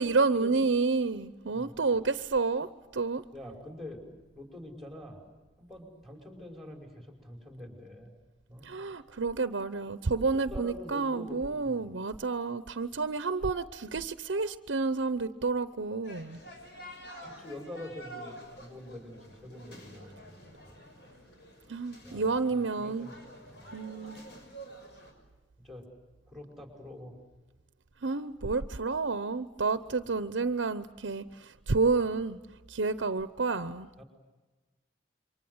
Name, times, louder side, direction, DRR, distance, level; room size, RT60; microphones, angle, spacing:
voice 1, 0.0-2.7 2.9-3.2 8.6-16.4 21.7-23.1 23.7-24.2 28.0-32.4 32.7-33.9, right 4 dB, 85° right, 12 dB, 0.8 m, -30 dB
voice 2, 1.5-1.8 3.3-4.0 4.3-5.2 5.6-8.1 8.5-8.7 10.2-11.8 17.2-20.8 22.0-23.1 23.4-23.8 25.6-25.9 26.3-27.1 34.0-34.1, left 1 dB, ahead, 3 dB, 5.4 m, -45 dB
sound 1, 16.0-25.1, right 1 dB, 60° left, 6.4 m, -49 dB
28.0 x 24.5 x 8.0 m, 1.2 s
head